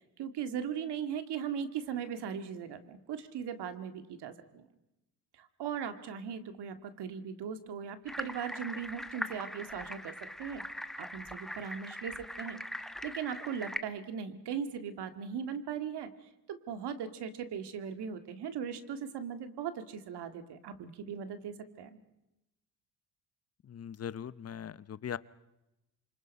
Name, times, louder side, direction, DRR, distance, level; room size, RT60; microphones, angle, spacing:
voice 1, 0.2-4.7 5.3-10.6 11.0-12.6 13.0-22.0, right 7 dB, 70° right, 9 dB, 2.1 m, -39 dB
sound 1, 8.1-13.8, equal, ahead, 1.0 m, -41 dB
voice 2, 23.6-25.2, left 8 dB, 35° left, 18 dB, 0.8 m, -40 dB
28.0 x 24.5 x 5.4 m, 0.93 s
cardioid pair, 90°, 41 cm